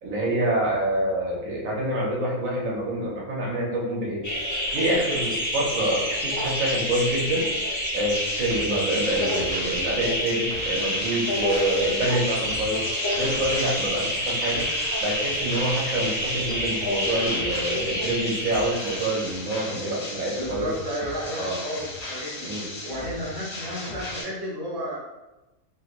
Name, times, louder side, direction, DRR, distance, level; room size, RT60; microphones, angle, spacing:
voice 1, 0.0-4.3 4.7-7.5 7.9-12.8 13.2-14.7 15.0-20.7 21.4-21.6 22.4-22.7, right 1 dB, 70° right, -3 dB, 1.3 m, -27 dB
sound 1, 4.2-19.3, equal, 20° left, 0.5 m, -28 dB
sound 2, 8.1-24.2, left 2 dB, 55° left, 1.3 m, -37 dB
voice 2, 20.3-22.5 22.8-25.0, equal, 20° right, -8 dB, 0.9 m, -32 dB
3.2 x 2.9 x 2.5 m, 1.0 s
omnidirectional pair, 1.5 m